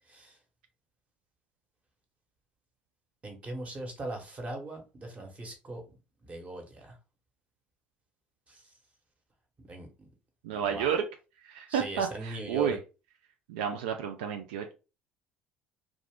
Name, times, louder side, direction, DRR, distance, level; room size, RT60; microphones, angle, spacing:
voice 1, 3.2-5.8 6.2-7.0 8.5-8.7 9.7-10.1 10.5-10.9 11.7-12.8, right 2 dB, 30° right, 1.1 m, -40 dB
voice 2, 10.4-11.0 11.4-12.8 13.5-14.7, right 8 dB, 80° right, 0.4 m, -31 dB
2.4 x 2.4 x 3.4 m
hypercardioid pair, 65°, 5 cm